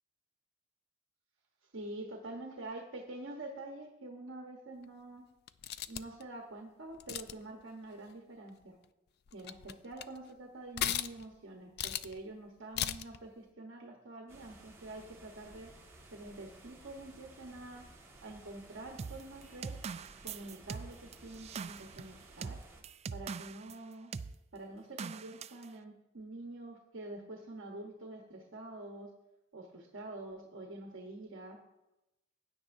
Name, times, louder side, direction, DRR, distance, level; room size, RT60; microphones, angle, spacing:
voice 1, 1.7-5.2 5.9-8.8 9.3-15.7 16.1-17.8 18.2-19.7 20.2-21.0 21.2-22.6 23.1-24.1 24.5-29.1 29.5-31.6, right 2 dB, 65° right, 1 dB, 1.1 m, -46 dB
sound 1, 5.5-6.2 7.0-7.5 8.8-8.9 9.3-10.2 10.8-11.4 11.8-12.2 12.8-13.2, left 10 dB, 55° left, 0.4 m, -36 dB
sound 2, 14.3-22.8, right 2 dB, 15° right, 1.6 m, -56 dB
sound 3, 19.0-23.8 24.1-24.3 25.0-25.7, right 5 dB, 30° right, 0.3 m, -42 dB
16.0 x 9.8 x 2.6 m, 0.95 s
head